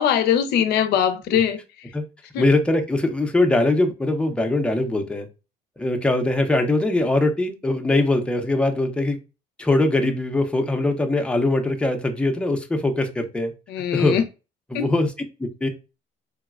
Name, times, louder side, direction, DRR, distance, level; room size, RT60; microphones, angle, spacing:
voice 1, 0.0-1.6 2.3-2.5 13.7-14.2 14.7-14.9, left 9 dB, 75° left, 0.5 m, -21 dB
voice 2, 2.4-5.3 5.8-9.2 9.6-13.5 13.9-14.2 14.7-15.1 15.4-15.7, left 2 dB, 5° left, 0.6 m, -21 dB
3.9 x 2.1 x 2.3 m
cardioid pair, 110°, 17 cm